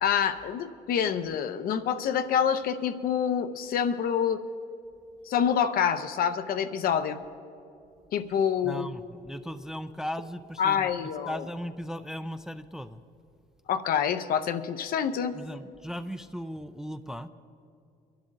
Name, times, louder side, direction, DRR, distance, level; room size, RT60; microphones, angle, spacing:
voice 1, 0.0-4.4 5.3-7.2 8.1-8.9 10.6-11.4 13.7-15.4, left 8 dB, 60° left, 10 dB, 0.7 m, -27 dB
voice 2, 8.6-10.9 11.2-13.0 15.3-17.3, equal, 5° right, 9 dB, 0.3 m, -37 dB
27.0 x 11.5 x 2.6 m, 2.7 s
cardioid pair, 110°, 17 cm